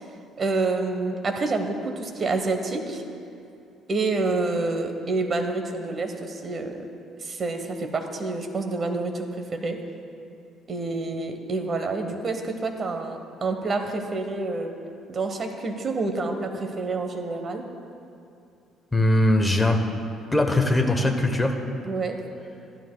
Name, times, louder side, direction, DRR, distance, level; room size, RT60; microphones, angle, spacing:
voice 1, 0.4-3.0 3.9-6.8 7.2-9.8 10.7-14.7 15.1-17.6 21.8-22.2, right 3 dB, 35° right, 5 dB, 1.1 m, -28 dB
voice 2, 18.9-19.8 20.3-21.6, left 1 dB, 10° left, 4 dB, 0.9 m, -20 dB
14.5 x 12.0 x 2.3 m, 2.6 s
cardioid pair, 110°, 0 cm